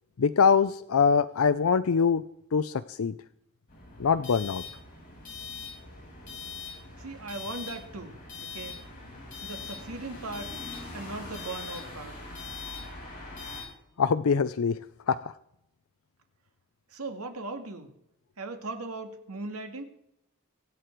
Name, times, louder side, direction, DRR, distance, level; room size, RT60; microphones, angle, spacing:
voice 1, 0.2-2.2 2.5-3.1 4.0-4.6 14.0-14.8 15.1-15.3, left 6 dB, 75° left, 12 dB, 0.5 m, -23 dB
sound 1, 3.7-13.6, left 4 dB, 40° left, 6.9 m, -41 dB
voice 2, 7.0-8.8 9.4-10.5 10.9-12.2 16.9-17.9 18.4-19.8, right 3 dB, 85° right, 6 dB, 2.1 m, -38 dB
23.5 x 8.5 x 4.6 m, 0.79 s
head